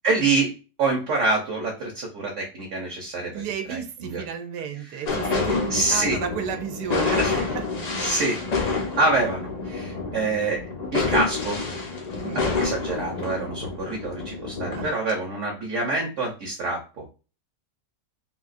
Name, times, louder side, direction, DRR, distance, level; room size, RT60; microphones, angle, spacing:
voice 1, 0.0-3.3 3.7-4.2 5.7-6.2 7.2-7.4 8.0-11.6 12.3-17.1, right 3 dB, 55° right, -2 dB, 1.0 m, -26 dB
voice 2, 3.3-7.2 12.2-12.4 14.8-14.9, right 8 dB, 90° right, 6 dB, 1.1 m, -32 dB
sound 1, 5.1-14.9, left 4 dB, 85° left, 0.3 m, -28 dB
3.7 x 2.4 x 2.4 m, 0.33 s
omnidirectional pair, 1.7 m